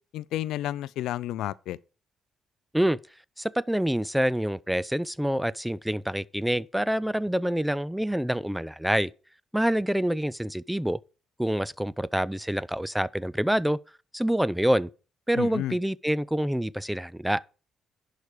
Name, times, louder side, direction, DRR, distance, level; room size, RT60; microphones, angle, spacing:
voice 1, 0.1-1.8 15.4-15.8, left 13 dB, 85° left, 0.4 m, -31 dB
voice 2, 3.4-9.1 9.5-11.0 11.4-13.8 14.1-14.9 15.3-17.4, equal, 5° right, 0.4 m, -26 dB
11.0 x 5.0 x 4.8 m
cardioid pair, 90°, 0 cm